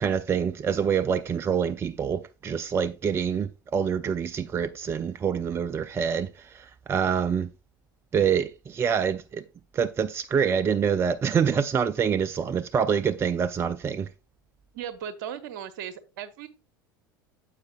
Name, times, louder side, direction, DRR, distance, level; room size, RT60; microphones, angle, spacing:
voice 1, 0.0-7.5 8.1-9.4 9.7-14.1, right 7 dB, 20° right, 0.4 m, -26 dB
voice 2, 14.7-16.5, right 9 dB, 55° right, 1.0 m, -37 dB
9.5 x 7.5 x 2.3 m
figure-of-eight pair, 75°, 12 cm